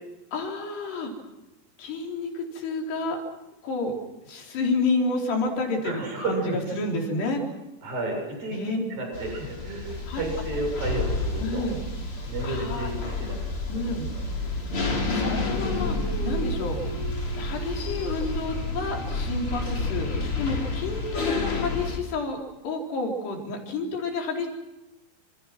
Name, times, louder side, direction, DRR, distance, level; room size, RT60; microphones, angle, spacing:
voice 1, 0.3-1.1 1.8-3.2 3.6-3.9 4.3-7.4 8.5-8.8 10.1-10.2 11.4-11.8 12.4-12.9 13.7-14.1 15.1-16.8 17.4-24.5, left 3 dB, 70° left, 1 dB, 6.3 m, -30 dB
voice 2, 5.8-6.7 7.8-11.7 12.2-13.4, right 2 dB, 50° right, 2 dB, 9.2 m, -32 dB
sound 1, 9.1-22.0, left 3 dB, 30° left, 4.1 m, -30 dB
sound 2, 9.8-18.5, right 5 dB, 20° right, 7.5 m, -38 dB
Dog, 15.2-18.9, left 2 dB, 85° left, 6.2 m, -39 dB
29.0 x 27.5 x 6.1 m, 1.0 s
omnidirectional pair, 5.1 m